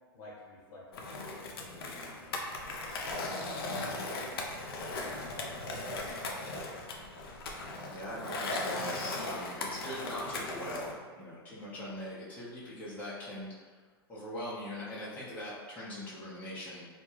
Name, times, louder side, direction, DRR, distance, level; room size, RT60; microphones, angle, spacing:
voice 1, 0.1-2.6 2.9-4.3 4.7-6.3 8.8-9.0, left 2 dB, 50° left, -5 dB, 0.9 m, -52 dB
Skateboard, 0.9-10.9, left 2 dB, 75° left, 0.4 m, -38 dB
voice 2, 7.9-13.5 14.1-16.9, equal, 15° left, -10 dB, 0.7 m, -41 dB
2.2 x 2.2 x 3.0 m, 1.5 s
hypercardioid pair, 110°, 13 cm